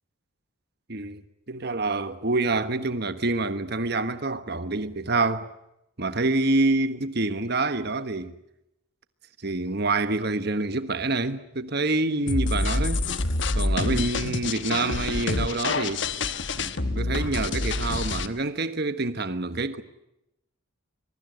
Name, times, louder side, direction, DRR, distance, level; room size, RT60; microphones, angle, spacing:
voice 1, 0.9-5.5 6.0-8.3 9.4-13.0 13.5-16.0 16.5-19.8, right 2 dB, 50° right, 1.4 m, -27 dB
sound 1, 12.3-18.3, left 2 dB, 60° left, 1.3 m, -27 dB
23.5 x 23.0 x 8.0 m
head